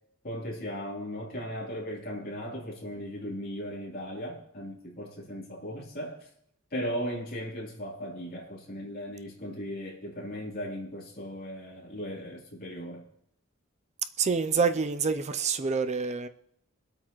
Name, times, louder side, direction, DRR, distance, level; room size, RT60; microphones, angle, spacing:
voice 1, 0.2-6.3 6.7-13.0, equal, 45° left, -3 dB, 3.2 m, -37 dB
voice 2, 14.2-16.3, right 5 dB, 35° right, 10 dB, 0.5 m, -27 dB
23.5 x 8.6 x 3.0 m, 0.75 s
head